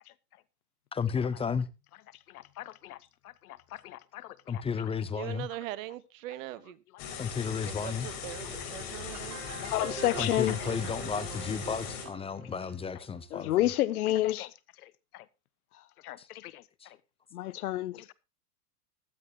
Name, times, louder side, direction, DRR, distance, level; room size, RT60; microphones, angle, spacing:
voice 1, 0.9-1.7 4.5-5.5 7.2-8.1 10.1-13.7 16.2-16.3 16.8-16.9, left 6 dB, 10° left, 0.8 m, -33 dB
voice 2, 2.6-3.0 3.8-4.2 4.5-4.6 9.6-10.6 13.3-14.3 16.0-16.2 16.4-16.6 17.3-18.1, left 14 dB, 65° left, 1.1 m, -29 dB
voice 3, 5.2-6.8 7.6-9.4, right 15 dB, 55° right, 1.3 m, -41 dB
sound 1, 7.0-12.1, left 7 dB, 50° left, 5.0 m, -39 dB
sound 2, 9.1-13.7, right 8 dB, 70° right, 2.9 m, -44 dB
15.5 x 12.0 x 2.9 m
hypercardioid pair, 110°, 47 cm